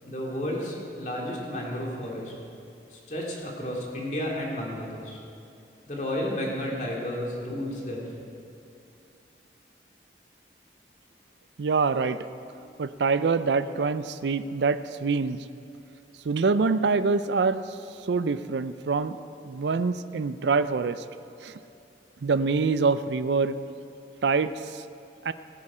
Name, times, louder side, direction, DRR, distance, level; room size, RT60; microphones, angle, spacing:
voice 1, 0.0-2.3 2.9-5.2 5.9-8.1, left 1 dB, 45° left, -2 dB, 2.5 m, -32 dB
voice 2, 11.6-12.2 12.8-15.4 16.2-17.6 18.1-19.2 19.4-21.0 21.4-21.5 22.2-23.6 24.2-24.8 25.2-25.3, right 4 dB, 80° right, 13 dB, 0.5 m, -25 dB
18.0 x 9.8 x 4.9 m, 2.6 s
head